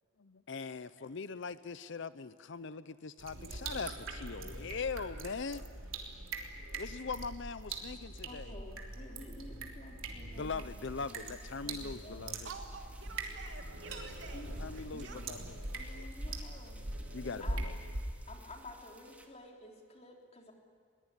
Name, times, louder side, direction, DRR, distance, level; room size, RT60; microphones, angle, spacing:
voice 1, 0.2-5.7 6.8-8.5 10.3-12.5 14.6-15.6 15.9-16.4 17.1-17.7, left 4 dB, 60° left, 14 dB, 0.6 m, -41 dB
sound 1, 3.2-18.0, right 2 dB, 80° right, 3.5 m, -42 dB
voice 2, 8.2-10.6 11.0-11.3 11.6-12.3 14.3-14.5 15.7-16.9 17.2-17.6 18.0-20.5, left 2 dB, 35° left, 1 dB, 3.6 m, -51 dB
sound 2, 10.3-19.3, right 2 dB, 10° right, 2.2 m, -61 dB
voice 3, 12.4-14.4 14.7-15.3, right 4 dB, 60° right, 3 dB, 2.8 m, -49 dB
22.5 x 21.5 x 9.9 m, 2.3 s
head